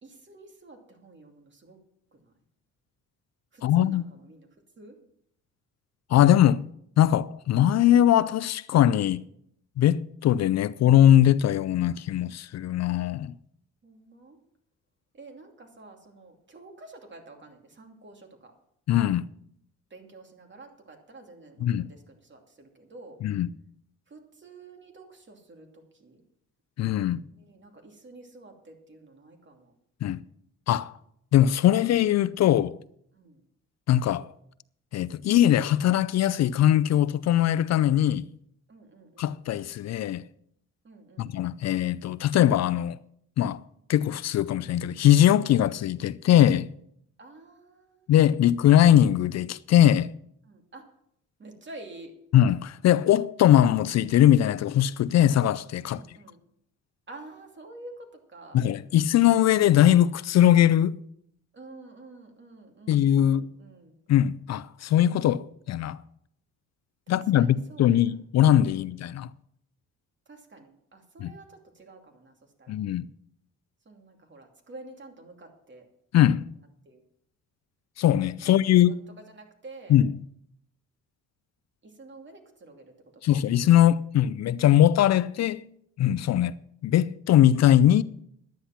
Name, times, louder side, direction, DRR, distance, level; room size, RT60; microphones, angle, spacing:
voice 1, 0.0-1.8 2.1-2.3 3.5-4.5 4.8-5.0 13.8-14.4 15.1-18.5 19.9-23.2 24.1-26.2 27.4-29.7 33.1-33.4 38.7-39.4 40.8-41.3 47.2-48.7 50.4-50.9 51.4-52.2 55.9-56.4 57.1-58.6 61.5-64.0 67.1-68.2 68.7-69.0 70.3-72.7 73.8-75.9 76.8-77.0 78.4-80.0 81.8-83.2, right 2 dB, 40° right, 2.6 m, -49 dB
voice 2, 3.6-4.0 6.1-6.7 7.0-9.2 9.8-13.4 18.9-19.3 21.6-21.9 23.2-23.5 26.8-27.3 30.0-30.2 30.7-31.0 31.3-32.8 33.9-34.3 34.9-38.3 39.2-40.2 41.2-43.0 43.4-43.6 43.9-46.7 48.1-50.1 52.3-56.0 58.5-61.0 62.9-63.5 64.1-66.0 67.1-69.3 71.2-71.3 72.7-73.1 76.1-76.5 78.0-79.0 79.9-80.1 83.2-85.7 86.0-86.5 86.8-88.0, left 11 dB, 60° left, 0.5 m, -21 dB
11.5 x 9.9 x 5.8 m
cardioid pair, 90°, 30 cm